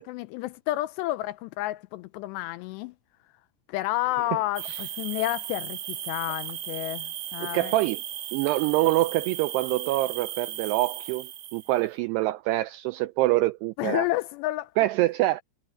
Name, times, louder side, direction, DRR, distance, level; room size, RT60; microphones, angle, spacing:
voice 1, 0.0-2.9 3.7-7.7 13.8-14.7, left 17 dB, 85° left, 2.5 m, -30 dB
sound 1, 4.6-11.8, right 11 dB, 65° right, 1.8 m, -36 dB
voice 2, 7.4-8.0 8.3-14.1 14.8-15.4, right 18 dB, 90° right, 2.3 m, -25 dB
omnidirectional pair, 5.3 m